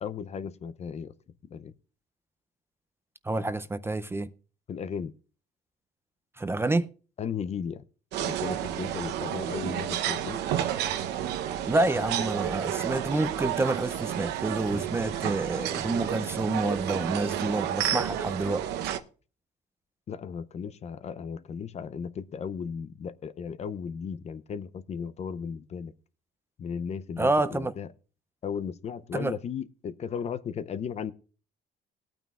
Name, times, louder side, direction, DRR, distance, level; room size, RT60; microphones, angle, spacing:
voice 1, 0.0-1.1 1.4-1.7 4.7-5.1 7.2-7.8 8.2-10.4 20.1-25.9 26.6-27.9 28.4-31.1, left 7 dB, 40° left, 0.6 m, -35 dB
voice 2, 3.3-4.3 6.4-6.9 11.7-18.6 27.2-27.7 29.1-29.3, right 2 dB, 15° right, 0.5 m, -28 dB
sound 1, 8.1-19.0, right 10 dB, 80° right, 0.8 m, -31 dB
19.0 x 9.0 x 2.4 m
cardioid pair, 110°, 17 cm